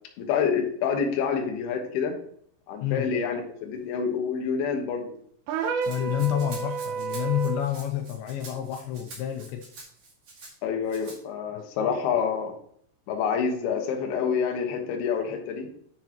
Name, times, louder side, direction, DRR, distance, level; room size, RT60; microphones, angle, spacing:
voice 1, 0.2-2.1 2.7-5.1 10.6-12.5 13.1-15.7, left 6 dB, 75° left, 3 dB, 2.5 m, -27 dB
sound 1, 5.5-7.7, right 6 dB, 85° right, 2.4 m, -30 dB
Rattle (instrument), 5.8-10.5 10.9-11.2, right 3 dB, 50° right, 2.2 m, -46 dB
voice 2, 5.9-9.7 11.5-11.6, left 11 dB, 90° left, 5 dB, 2.5 m, -29 dB
9.4 x 6.3 x 2.9 m, 0.64 s
omnidirectional pair, 5.9 m